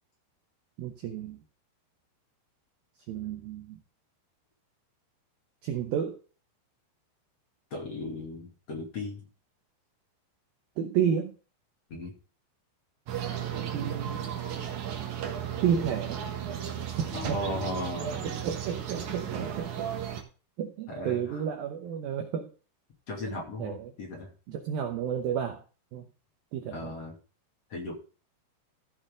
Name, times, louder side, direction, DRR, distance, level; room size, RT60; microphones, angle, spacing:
voice 1, 0.8-1.4 3.1-3.8 5.6-6.2 10.8-11.3 13.7-14.2 15.6-16.2 17.0-17.4 18.2-19.9 20.6-22.5 23.6-23.9 24.5-25.6 25.9-26.1 26.5-26.9, right 8 dB, 80° right, 4 dB, 2.2 m, -31 dB
voice 2, 7.7-9.3 11.9-12.1 17.1-18.5 20.9-21.4 23.1-24.3 26.7-27.1 27.7-28.0, left 1 dB, 40° left, -1 dB, 2.9 m, -36 dB
sound 1, 13.1-20.2, right 9 dB, 65° right, 2.0 m, -34 dB
15.0 x 6.7 x 3.7 m, 0.35 s
omnidirectional pair, 5.5 m